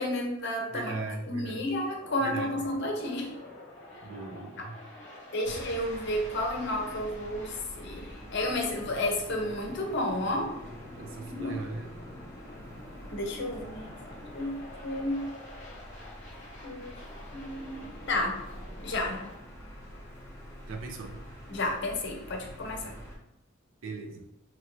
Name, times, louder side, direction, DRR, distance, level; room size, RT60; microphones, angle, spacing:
voice 1, 0.0-1.0 1.3-3.3 5.3-10.5 11.3-11.6 13.1-13.9 14.3-14.6 14.8-15.3 16.6-17.0 17.3-18.4 18.8-19.3 21.5-22.9, left 1 dB, 60° left, 1 dB, 0.6 m, -31 dB
voice 2, 0.7-1.7 2.2-2.8 4.0-4.8 5.5-5.6 11.0-11.9 20.7-21.2 22.8-23.0 23.8-24.3, right 3 dB, 75° right, 4 dB, 0.5 m, -39 dB
sound 1, 1.0-19.4, left 1 dB, 35° left, 0.9 m, -48 dB
sound 2, 5.4-23.2, equal, 15° left, 0.7 m, -46 dB
2.9 x 2.6 x 2.9 m, 0.80 s
head